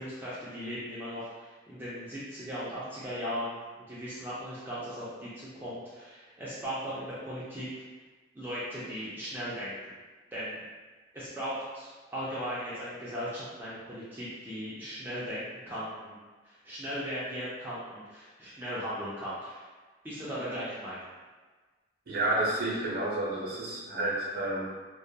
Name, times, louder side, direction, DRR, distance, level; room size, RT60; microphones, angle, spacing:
voice 1, 0.0-3.6 3.9-7.7 8.4-9.9 10.3-10.6 11.1-16.2 16.4-19.6 20.0-21.1, equal, 10° right, -10 dB, 0.4 m, -37 dB
voice 2, 22.1-24.7, right 1 dB, 55° right, -4 dB, 0.6 m, -30 dB
2.2 x 2.2 x 2.6 m, 1.3 s
head